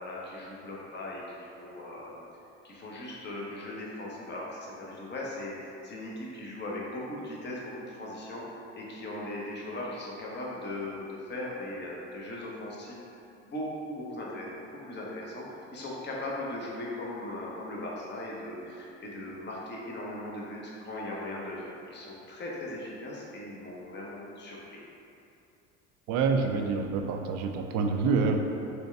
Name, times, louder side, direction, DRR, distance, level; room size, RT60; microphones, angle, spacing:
voice 1, 0.0-2.3 2.6-13.0 13.4-24.8, left 1 dB, 30° left, -4 dB, 0.9 m, -39 dB
voice 2, 26.1-28.4, right 5 dB, 50° right, 4 dB, 0.4 m, -27 dB
4.2 x 2.3 x 3.2 m, 2.7 s
hypercardioid pair, 70°, 37 cm